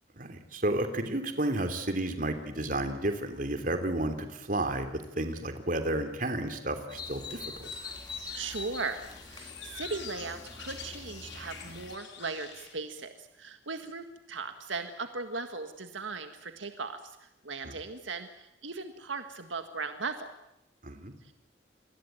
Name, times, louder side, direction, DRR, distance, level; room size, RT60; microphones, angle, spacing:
voice 1, 0.2-7.7 17.6-17.7 20.8-21.1, right 1 dB, 45° right, 7 dB, 3.0 m, -32 dB
sound 1, 6.9-12.0, left 4 dB, 20° left, 2.1 m, -44 dB
sound 2, 7.6-12.7, left 6 dB, 65° left, 5.4 m, -47 dB
voice 2, 8.3-9.0 9.3-20.3 21.2-21.3, right 4 dB, 75° right, 7 dB, 1.8 m, -38 dB
28.5 x 21.5 x 9.3 m, 0.85 s
head